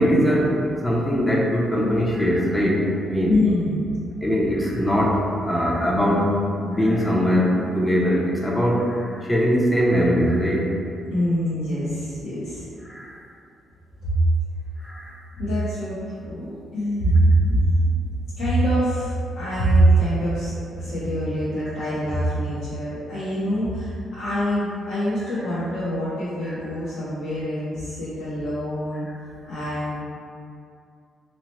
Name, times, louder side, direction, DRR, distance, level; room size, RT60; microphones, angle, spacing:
voice 1, 0.0-3.3 4.2-10.7 12.8-13.2 14.8-15.1 21.7-21.8 25.2-25.4 26.4-26.6, equal, 10° left, -4 dB, 0.5 m, -21 dB
voice 2, 3.3-3.8 11.1-12.7 14.0-14.1 15.3-17.7 18.4-29.1 29.4-30.0, right 1 dB, 75° left, -12 dB, 0.8 m, -24 dB
2.8 x 2.1 x 2.9 m, 2.4 s
cardioid pair, 90°, 0 cm